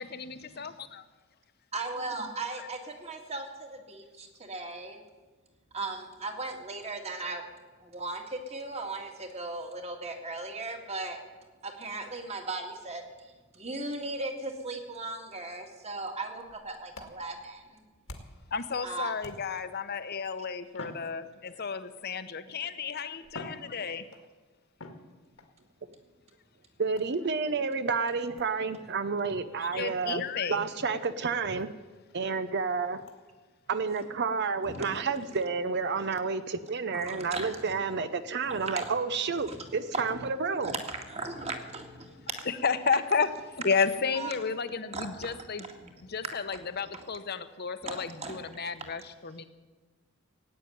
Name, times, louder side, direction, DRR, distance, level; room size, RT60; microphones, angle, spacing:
voice 1, 0.0-0.7 2.6-2.7 18.5-24.0 29.6-30.6 42.5-43.3 43.6-45.7 46.0-49.4, left 5 dB, 50° left, 10 dB, 0.9 m, -32 dB
voice 2, 1.7-5.0 5.7-7.4 7.8-11.2 11.6-13.3 13.5-17.8 18.8-19.1 34.6-35.2 36.9-37.7 38.5-38.9 39.4-39.6 39.9-40.3 40.6-42.5 44.2-44.3 44.9-45.1 45.6-45.9 46.9-47.0 47.8-48.4, right 2 dB, 30° right, 4 dB, 2.0 m, -37 dB
sound 1, 16.4-18.5 19.2-19.8 20.7-21.8 22.6-22.7 23.2-24.3 24.8-25.5 27.0-27.3 28.4-28.6 29.2-29.3 29.6-29.7 30.1-30.2 30.5-30.7 31.1-31.2 31.6-31.7 32.1-32.2 33.1-33.2, left 2 dB, 80° left, 2.0 m, -47 dB
voice 3, 26.8-30.2 30.5-31.7 32.1-33.0 33.7-40.8, right 4 dB, 55° right, 12 dB, 0.7 m, -30 dB
16.5 x 9.1 x 9.3 m, 1.3 s
head